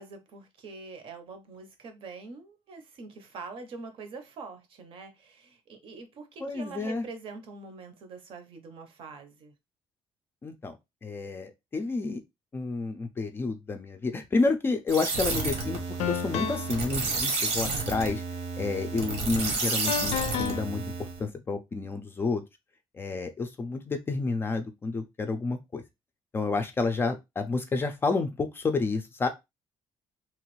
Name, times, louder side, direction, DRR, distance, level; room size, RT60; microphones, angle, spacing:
voice 1, 0.0-9.5, right 4 dB, 60° right, 0.7 m, -44 dB
voice 2, 6.4-7.0 10.4-10.7 11.0-12.2 12.5-15.8 16.1-18.2 18.6-20.8 21.2-22.4 22.9-25.8 26.3-29.3, left 3 dB, 20° left, 0.4 m, -30 dB
sound 1, 14.9-21.2, right 3 dB, 85° right, 1.0 m, -31 dB
sound 2, 15.2-15.4 16.0-16.8 19.9-20.6, left 8 dB, 85° left, 0.5 m, -31 dB
3.0 x 2.4 x 3.0 m
cardioid pair, 170°, 11 cm